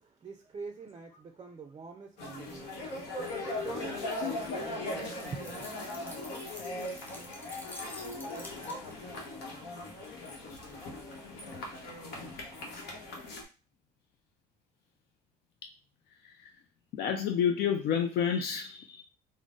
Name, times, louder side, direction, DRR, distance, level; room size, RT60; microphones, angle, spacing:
voice 1, 0.0-5.7, right 5 dB, 30° right, 0.4 m, -45 dB
sound 1, 2.2-13.4, left 2 dB, 85° left, 1.0 m, -39 dB
voice 2, 4.2-4.6 17.0-19.0, left 8 dB, 70° left, 0.4 m, -29 dB
sound 2, 4.9-9.1, left 1 dB, 10° left, 0.9 m, -49 dB
3.8 x 2.0 x 3.7 m
cardioid pair, 110°, 17 cm